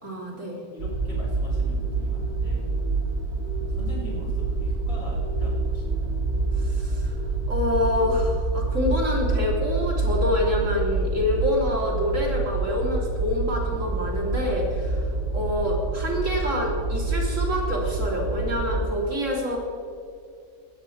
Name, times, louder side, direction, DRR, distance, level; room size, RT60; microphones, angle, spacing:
voice 1, 0.0-0.6 6.6-7.1 7.5-19.6, left 1 dB, 50° right, -2 dB, 3.8 m, -27 dB
voice 2, 0.7-2.7 3.5-6.1, left 1 dB, 40° left, -5 dB, 4.3 m, -41 dB
sound 1, 0.8-18.9, right 3 dB, 75° right, 2.1 m, -27 dB
18.5 x 14.5 x 3.4 m, 2.3 s
omnidirectional pair, 1.6 m